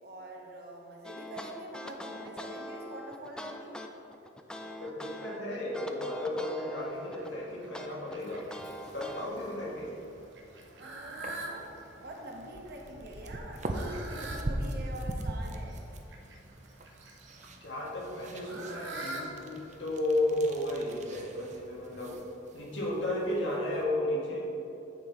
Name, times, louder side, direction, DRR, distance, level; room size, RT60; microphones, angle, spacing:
voice 1, 0.0-3.7 11.3-15.8, right 1 dB, 60° right, 0 dB, 1.1 m, -45 dB
sound 1, 1.0-5.4 5.7-7.3 7.7-9.3, left 1 dB, 5° left, 0.3 m, -43 dB
voice 2, 4.8-8.5 8.9-10.0 17.6-22.2 22.5-24.6, left 1 dB, 80° left, -3 dB, 1.6 m, -33 dB
Fowl, 6.8-22.1, right 2 dB, 75° right, 0.9 m, -47 dB
sound 2, 8.5-23.8, right 1 dB, 40° right, 0.6 m, -42 dB
9.5 x 4.1 x 4.5 m, 2.9 s
head